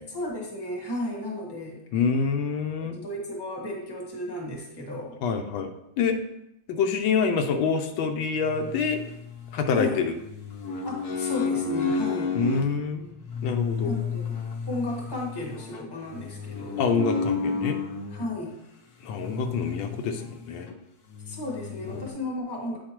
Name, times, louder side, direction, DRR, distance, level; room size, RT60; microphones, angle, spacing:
voice 1, 0.1-1.8 2.8-5.2 9.7-10.0 10.8-12.4 13.8-14.4 14.7-16.8 18.1-18.6 21.3-22.8, left 1 dB, 15° left, -1 dB, 1.1 m, -34 dB
voice 2, 1.9-2.9 5.2-5.7 6.0-6.2 6.7-9.0 9.5-10.2 12.3-13.1 13.4-14.0 16.8-17.8 19.0-20.7 21.9-22.1, left 5 dB, 80° left, 5 dB, 1.4 m, -26 dB
sound 1, 8.5-9.7 10.2-12.7 13.3-18.3 19.2-20.4 20.7-20.8 21.1-22.1, left 5 dB, 65° left, 1.1 m, -31 dB
8.6 x 4.9 x 3.0 m, 0.82 s
omnidirectional pair, 2.1 m